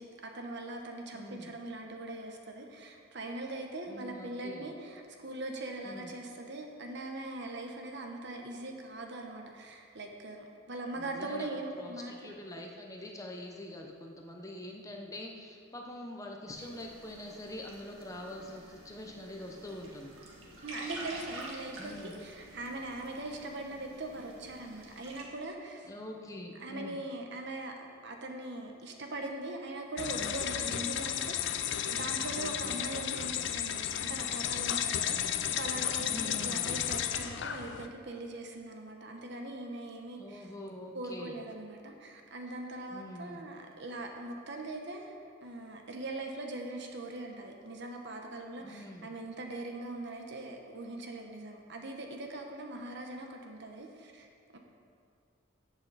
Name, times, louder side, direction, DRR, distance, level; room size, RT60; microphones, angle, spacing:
voice 1, 0.0-12.3 20.6-25.9 26.6-40.5 40.9-54.3 54.5-54.6, right 2 dB, 55° right, 3 dB, 1.1 m, -41 dB
voice 2, 1.1-1.5 3.9-4.7 5.8-6.1 11.0-11.5 11.7-20.2 21.8-22.2 25.9-27.0 32.3-32.8 36.1-36.8 40.2-41.4 42.9-43.5 48.6-49.1, left 1 dB, 15° left, 1 dB, 0.9 m, -44 dB
sound 1, 16.5-25.2, right 2 dB, 80° right, 1.8 m, -49 dB
sound 2, 30.0-37.9, left 10 dB, 60° left, 0.5 m, -33 dB
14.0 x 8.0 x 4.2 m, 2.3 s
head